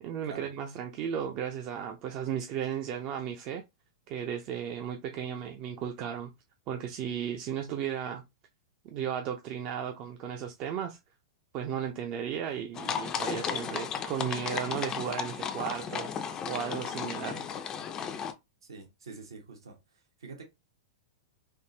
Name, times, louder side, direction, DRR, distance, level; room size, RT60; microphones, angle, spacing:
voice 1, 0.0-3.6 4.1-6.3 6.7-8.2 8.8-11.0 11.5-16.1 16.5-17.4, right 8 dB, 40° right, 0.4 m, -35 dB
sound 1, 12.7-18.3, left 7 dB, 25° left, 0.4 m, -34 dB
voice 2, 18.6-19.8 20.2-20.4, right 4 dB, 85° right, 1.0 m, -45 dB
3.5 x 2.0 x 2.7 m
hypercardioid pair, 110°, 2 cm